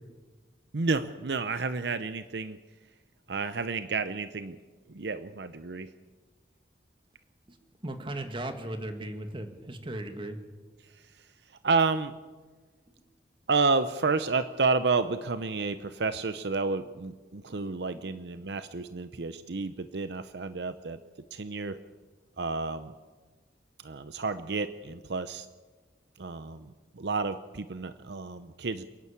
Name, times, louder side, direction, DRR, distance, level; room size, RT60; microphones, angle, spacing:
voice 1, 0.7-2.6 3.3-4.6 4.9-5.9 10.9-11.2 11.6-12.2 13.5-21.0 21.3-21.8 22.4-22.9 23.8-25.5 26.2-28.8, right 4 dB, 70° right, 12 dB, 0.7 m, -30 dB
voice 2, 7.8-10.4 12.9-13.0 16.8-16.9, right 1 dB, 30° right, 6 dB, 1.9 m, -38 dB
28.0 x 11.0 x 8.5 m, 1.3 s
head